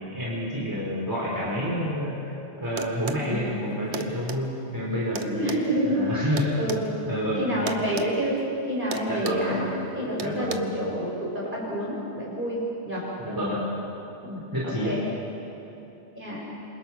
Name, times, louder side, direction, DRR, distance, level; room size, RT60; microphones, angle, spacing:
voice 1, 0.0-5.6 5.9-6.5 7.1-7.4 9.1-9.7 10.2-10.6 13.2-13.6 14.5-15.0, equal, 20° right, -6 dB, 4.7 m, -29 dB
sound 1, 2.8-3.3 3.9-4.4 5.1-6.8 7.7-8.1 8.4-8.6 8.9-9.5 10.2-10.6, right 6 dB, 80° right, 1.3 m, -35 dB
voice 2, 5.3-6.3 6.6-9.7 9.9-13.1 14.2-15.0 16.1-16.4, equal, 50° right, -5 dB, 7.9 m, -28 dB
27.5 x 26.0 x 6.1 m, 2.9 s
omnidirectional pair, 1.1 m